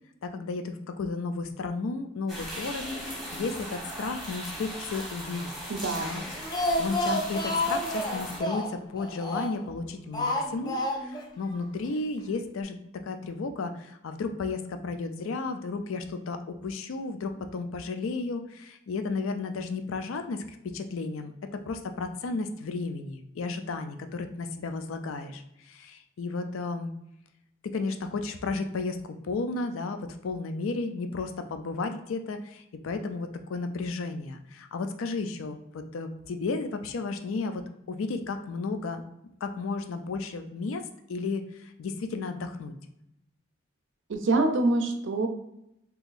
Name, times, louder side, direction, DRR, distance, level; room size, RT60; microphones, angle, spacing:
voice 1, 0.2-5.5 6.0-6.2 6.5-12.8 13.0-20.4 20.7-26.9 27.6-29.0 29.2-37.6 37.9-39.0 39.4-40.8 41.1-42.7, left 3 dB, 90° left, 7 dB, 0.4 m, -33 dB
sound 1, 2.3-8.4, equal, ahead, 0.9 m, -38 dB
voice 2, 5.7-6.2 44.1-45.3, right 2 dB, 70° right, 5 dB, 0.5 m, -25 dB
Speech, 6.2-9.7 10.1-11.3 11.5-11.6 11.9-12.0, left 1 dB, 20° left, 0.3 m, -30 dB
3.8 x 2.8 x 2.5 m, 0.83 s
head